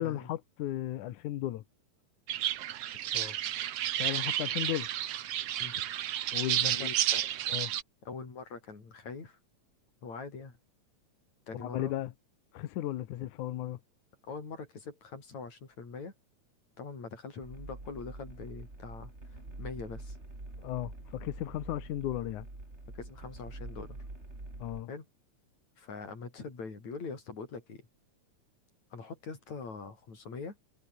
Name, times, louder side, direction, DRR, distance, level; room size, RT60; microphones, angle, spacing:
voice 1, 0.0-1.6 4.0-4.9 6.3-6.9 7.5-7.7 11.6-12.1 12.5-13.8 20.6-22.5 24.6-24.9, left 13 dB, 80° left, 2.6 m, -35 dB
sound 1, 2.3-7.8, right 12 dB, 65° right, 2.0 m, -31 dB
voice 2, 6.6-7.3 8.0-9.4 10.0-10.6 11.5-11.9 14.2-16.1 16.8-19.1 19.6-20.2 22.9-24.0 24.9-25.1 25.8-27.9 28.9-30.6, left 4 dB, 65° left, 6.5 m, -43 dB
sound 2, 17.4-24.8, right 2 dB, 20° right, 5.2 m, -45 dB
omnidirectional pair, 3.4 m